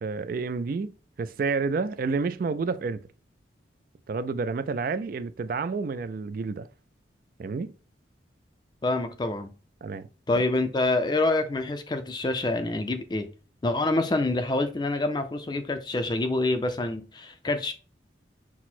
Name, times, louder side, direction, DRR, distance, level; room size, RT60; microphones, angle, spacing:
voice 1, 0.0-3.0 4.1-6.7 7.4-7.7 9.8-10.1, right 4 dB, 50° right, 0.3 m, -29 dB
voice 2, 8.8-9.5 10.3-13.3 13.6-17.7, left 2 dB, 25° left, 0.4 m, -26 dB
6.1 x 2.1 x 4.2 m
head